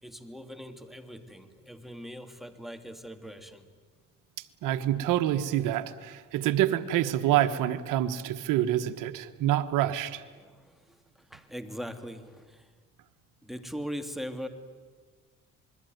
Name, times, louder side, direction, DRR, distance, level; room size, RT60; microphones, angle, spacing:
voice 1, 0.0-3.7 10.3-12.7 13.4-14.5, equal, ahead, 7 dB, 2.8 m, -41 dB
voice 2, 4.6-10.2, right 12 dB, 85° right, 8 dB, 1.4 m, -27 dB
27.5 x 21.0 x 9.4 m, 1.4 s
cardioid pair, 85°, 31 cm